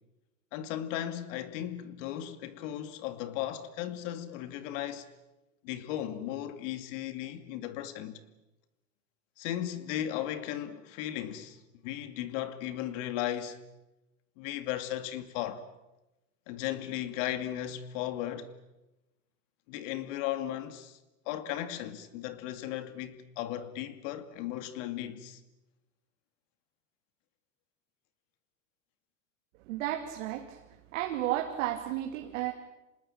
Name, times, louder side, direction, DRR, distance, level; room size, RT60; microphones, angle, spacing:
voice 1, 0.5-5.1 5.6-8.2 9.4-13.6 14.4-15.6 16.5-18.5 19.7-21.0 21.3-25.4, left 12 dB, 65° left, 2.4 m, -36 dB
voice 2, 29.7-30.6 30.9-32.5, right 13 dB, 70° right, 2.6 m, -32 dB
26.5 x 20.0 x 8.8 m
supercardioid pair, 130°, 41 cm